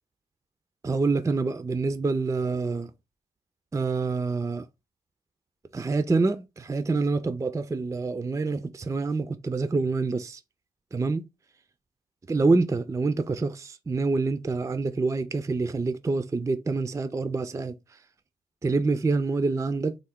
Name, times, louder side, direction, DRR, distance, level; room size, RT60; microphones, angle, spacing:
voice 1, 0.8-2.9 3.7-4.7 5.7-10.4 10.9-11.2 12.3-18.0 18.6-20.0, right 3 dB, 15° right, 0.4 m, -26 dB
3.5 x 2.1 x 3.5 m
hypercardioid pair, 45°, 18 cm